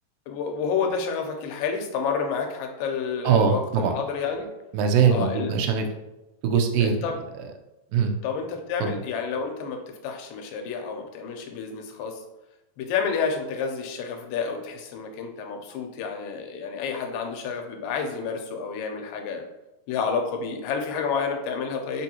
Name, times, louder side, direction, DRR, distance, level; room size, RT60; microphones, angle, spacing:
voice 1, 0.3-4.5 5.1-5.6 6.8-7.2 8.2-12.2 12.8-19.5 19.9-22.0, left 5 dB, 80° left, 3 dB, 2.2 m, -30 dB
voice 2, 3.2-3.9 4.7-5.9 6.4-7.1 7.9-8.1 8.8-9.0, right 6 dB, 80° right, 4 dB, 1.8 m, -21 dB
5.2 x 2.6 x 2.8 m, 0.97 s
omnidirectional pair, 4.0 m